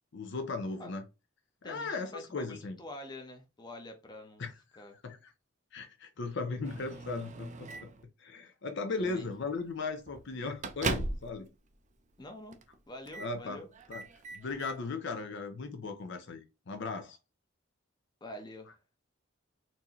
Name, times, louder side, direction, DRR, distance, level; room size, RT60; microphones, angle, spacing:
voice 1, 0.1-1.0 1.6-2.8 4.4-4.5 5.0-5.3 5.7-7.9 8.2-11.5 13.2-13.6 13.9-14.0 14.3-17.2, left 3 dB, 65° left, 0.6 m, -37 dB
voice 2, 1.6-4.5 4.8-4.9 9.0-9.3 12.2-12.6 12.9-13.7 18.2-18.8, left 1 dB, 20° left, 0.8 m, -46 dB
Microwave oven, 6.6-8.0 9.0-9.2 9.6-9.7 10.1-11.4 11.7-11.8 12.5-12.8 13.0-13.3 13.7-14.8, right 3 dB, 40° right, 0.5 m, -38 dB
4.4 x 2.7 x 2.9 m
head